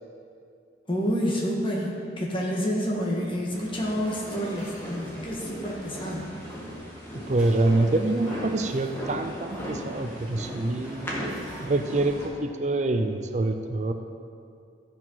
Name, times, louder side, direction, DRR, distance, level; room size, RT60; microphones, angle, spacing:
voice 1, 0.9-6.4, equal, 30° left, -2 dB, 1.7 m, -29 dB
sound 1, 3.5-12.3, equal, 15° left, 1.7 m, -38 dB
sound 2, 3.6-12.3, equal, 5° right, 2.9 m, -48 dB
voice 2, 7.3-13.9, right 2 dB, 40° right, 7 dB, 0.5 m, -26 dB
14.5 x 5.2 x 5.6 m, 2.4 s
head